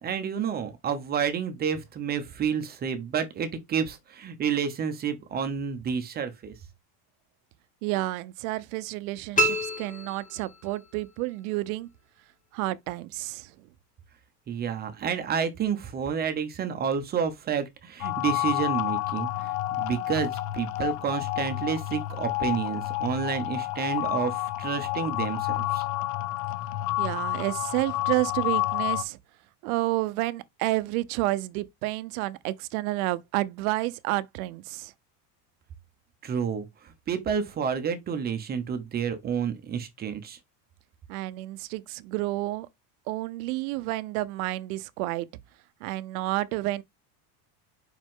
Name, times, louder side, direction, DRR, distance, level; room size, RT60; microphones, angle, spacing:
voice 1, 0.0-6.5 14.5-25.8 36.2-40.4, right 7 dB, 20° right, 0.8 m, -30 dB
voice 2, 7.8-11.9 12.5-13.5 27.0-29.2 29.6-34.9 41.1-42.7 43.1-45.3 45.8-46.8, right 18 dB, 70° right, 0.8 m, -30 dB
sound 1, 9.4-10.9, right 1 dB, 15° left, 1.6 m, -28 dB
sound 2, 18.0-29.0, left 16 dB, 60° left, 0.9 m, -29 dB
5.2 x 5.0 x 3.6 m
cardioid pair, 170°, 44 cm